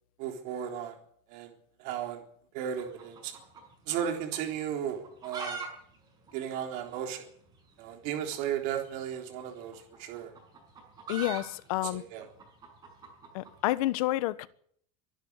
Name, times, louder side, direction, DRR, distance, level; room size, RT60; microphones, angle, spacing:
voice 1, 0.2-1.0 1.3-1.5 1.8-2.2 2.5-3.3 3.9-5.6 6.3-7.3 7.8-10.3 11.8-12.3, right 9 dB, 50° right, 3.7 m, -35 dB
sound 1, 2.8-4.1 4.3-4.4 4.9-5.7 5.9-6.0 6.3-6.4 7.0-7.1 8.2-8.4 9.6-13.8, right 5 dB, 20° right, 6.3 m, -41 dB
voice 2, 11.1-12.0 13.3-14.5, left 17 dB, 75° left, 1.3 m, -29 dB
24.0 x 11.5 x 9.7 m
cardioid pair, 175°, 19 cm